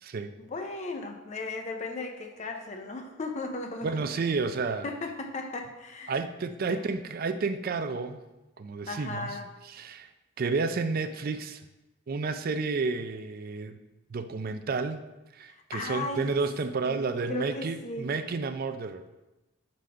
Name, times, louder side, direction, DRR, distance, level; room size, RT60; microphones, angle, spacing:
voice 1, 0.4-4.2 4.8-6.1 6.7-6.8 8.9-9.5 15.5-16.3 16.8-18.1, left 2 dB, 35° left, 5 dB, 0.5 m, -36 dB
voice 2, 3.8-4.9 6.1-8.2 8.6-9.4 9.6-10.1 10.4-11.6 12.1-13.8 14.1-15.0 15.3-19.0, right 4 dB, 45° right, 9 dB, 0.4 m, -31 dB
4.9 x 4.0 x 5.6 m, 1.0 s
head